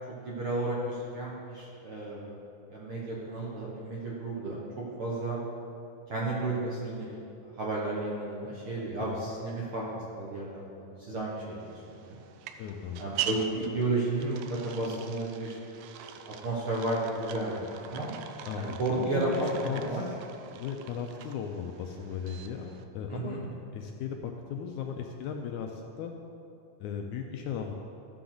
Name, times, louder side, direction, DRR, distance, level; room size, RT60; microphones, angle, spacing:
voice 1, 0.2-2.4 2.7-4.6 5.0-5.4 6.1-7.1 7.6-11.8 12.0-12.2 13.0-15.6 16.0-18.1 18.5-19.3 19.7-20.0 23.1-23.4, right 2 dB, 60° right, -5 dB, 1.5 m, -33 dB
sound 1, 11.6-22.8, right 9 dB, 80° right, 1.7 m, -42 dB
voice 2, 12.6-13.1 18.5-20.2 20.5-26.1 26.8-27.7, left 7 dB, 80° left, 3 dB, 1.8 m, -37 dB
13.5 x 6.9 x 3.9 m, 2.6 s
omnidirectional pair, 3.8 m